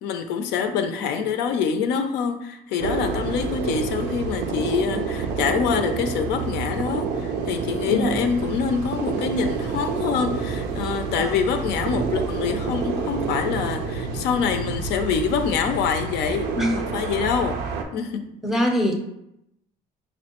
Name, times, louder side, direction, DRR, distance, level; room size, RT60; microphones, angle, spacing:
voice 1, 0.0-17.6 17.9-18.3, left 6 dB, 85° left, 7 dB, 0.4 m, -25 dB
sound 1, 2.8-17.8, right 5 dB, 85° right, 0.4 m, -28 dB
voice 2, 18.4-19.0, equal, ahead, 2 dB, 0.5 m, -23 dB
5.0 x 2.1 x 2.9 m, 0.82 s
cardioid pair, 110°, 17 cm